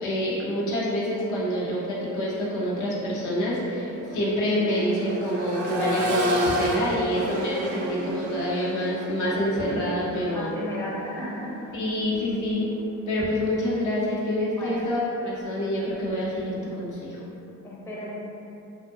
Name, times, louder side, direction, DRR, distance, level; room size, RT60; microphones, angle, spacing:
voice 1, 0.0-10.5 11.7-12.6 13.1-17.2, equal, 80° left, -6 dB, 0.8 m, -27 dB
Accelerating revving vroom, 2.4-2.6 3.0-12.9 14.6-14.7, equal, 75° right, 0.5 m, -31 dB
voice 2, 10.3-11.6 14.5-14.9 17.6-18.2, equal, 10° left, -6 dB, 0.5 m, -35 dB
2.6 x 2.4 x 2.6 m, 2.8 s
cardioid pair, 100°, 30 cm